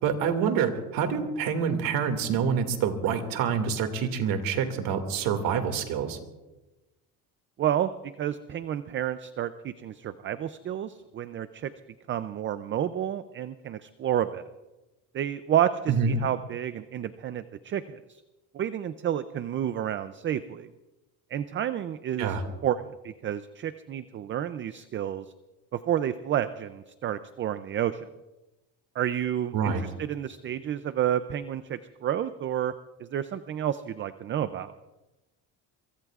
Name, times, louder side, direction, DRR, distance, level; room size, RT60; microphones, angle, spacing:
voice 1, 0.0-6.2 15.9-16.2 22.2-22.4 29.5-29.8, right 6 dB, 75° right, 6 dB, 2.3 m, -27 dB
voice 2, 7.6-7.9 8.2-11.7 12.1-14.4 15.1-18.2 18.5-20.7 21.3-22.4 22.6-25.3 25.7-28.1 28.9-32.7 33.0-34.7, right 10 dB, 35° right, 12 dB, 0.5 m, -30 dB
23.5 x 23.5 x 2.4 m, 1.1 s
cardioid pair, 140°, 35 cm